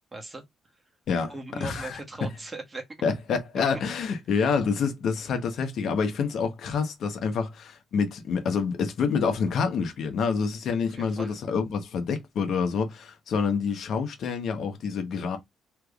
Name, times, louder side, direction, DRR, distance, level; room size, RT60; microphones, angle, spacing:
voice 1, 0.1-0.4 1.3-2.9 4.3-4.5 10.9-11.4, right 2 dB, 25° right, 1.2 m, -39 dB
voice 2, 1.6-2.0 3.0-15.4, left 5 dB, 70° left, 0.9 m, -27 dB
3.4 x 3.0 x 2.4 m
cardioid pair, 90°, 0 cm